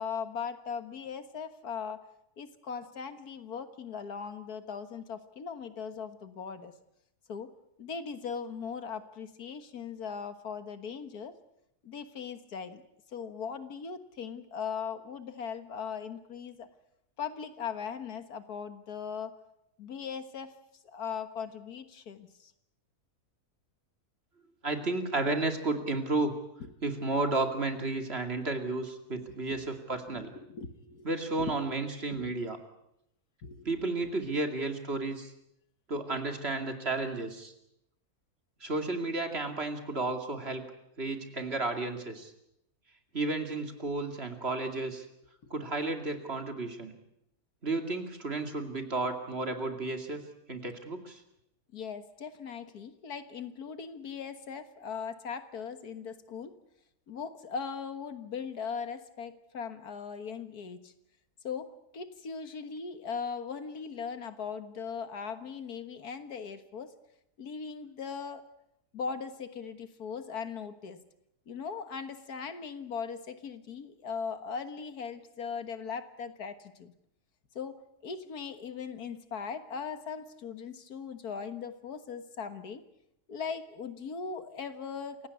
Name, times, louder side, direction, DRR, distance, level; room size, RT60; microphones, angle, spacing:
voice 1, 0.0-2.0 2.4-6.7 7.3-7.5 7.8-11.4 11.8-12.8 13.1-16.7 17.2-19.4 19.8-20.5 20.9-22.5 29.2-29.6 30.1-31.1 31.4-31.5 32.1-32.5 33.4-33.7 45.4-45.5 51.7-56.6 57.1-60.9 61.4-66.9 67.4-68.4 68.9-71.0 71.5-76.9 77.6-82.8 83.3-85.3, left 6 dB, 80° left, 10 dB, 2.0 m, -39 dB
voice 2, 24.6-26.3 26.8-30.3 31.0-32.6 33.6-35.3 35.9-37.5 38.6-40.6 41.0-42.3 43.1-45.1 45.5-46.9 47.6-50.2 50.5-51.2, right 2 dB, 40° right, 5 dB, 2.7 m, -32 dB
28.0 x 17.0 x 8.3 m, 0.80 s
omnidirectional pair, 1.6 m